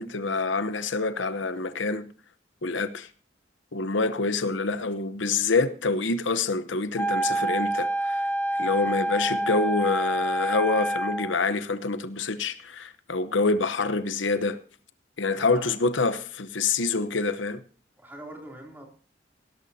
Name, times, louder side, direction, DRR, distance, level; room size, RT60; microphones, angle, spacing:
voice 1, 0.0-2.1 2.6-3.1 3.7-8.3 8.6-14.6 15.2-17.6, left 3 dB, 80° left, 0.9 m, -26 dB
Wind instrument woodwind instrument, 7.0-11.4, right 1 dB, 10° left, 0.6 m, -27 dB
voice 2, 15.3-15.7 18.0-18.9, right 1 dB, 10° right, 3.0 m, -43 dB
17.5 x 13.0 x 2.8 m
head